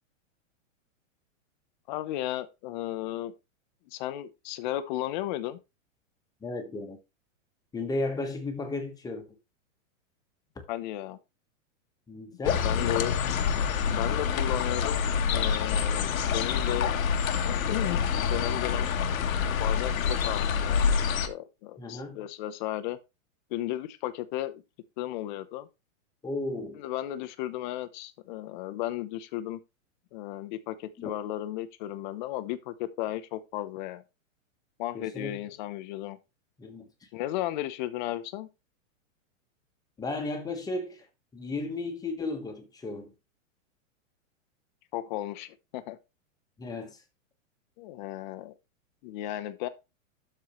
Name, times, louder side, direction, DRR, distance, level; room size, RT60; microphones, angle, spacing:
voice 1, 1.9-3.3 3.9-5.6 10.7-11.2 12.6-13.2 13.8-15.1 15.3-16.9 17.5-18.9 19.6-20.9 21.3-23.0 23.5-24.6 25.0-25.7 26.8-29.6 30.1-34.0 34.8-36.2 37.1-38.5 44.9-46.0 47.8-48.5 49.0-49.7, left 14 dB, 35° left, 0.8 m, -34 dB
voice 2, 6.4-7.0 7.7-9.3 10.5-10.6 12.1-12.7 21.8-22.2 26.2-26.8 31.0-31.1 34.9-35.4 36.6-36.9 40.0-41.1 41.3-43.1 46.6-47.0, left 2 dB, 10° left, 1.3 m, -34 dB
sound 1, 12.4-21.3, left 6 dB, 85° left, 1.4 m, -27 dB
12.5 x 4.5 x 3.1 m
supercardioid pair, 155°, 40 cm